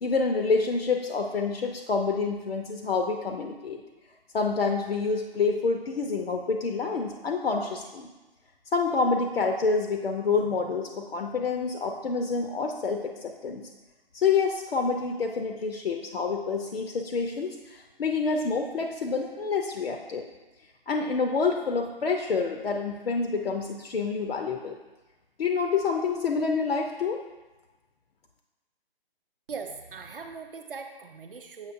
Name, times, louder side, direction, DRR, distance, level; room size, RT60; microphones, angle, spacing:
voice 1, 0.0-3.8 4.3-8.1 8.7-13.7 14.1-20.2 20.9-24.8 25.4-27.2, left 4 dB, 70° left, 4 dB, 0.6 m, -27 dB
voice 2, 29.5-31.7, right 5 dB, 60° right, 4 dB, 0.6 m, -40 dB
7.2 x 5.7 x 2.5 m, 1.2 s
figure-of-eight pair, 150°, 31 cm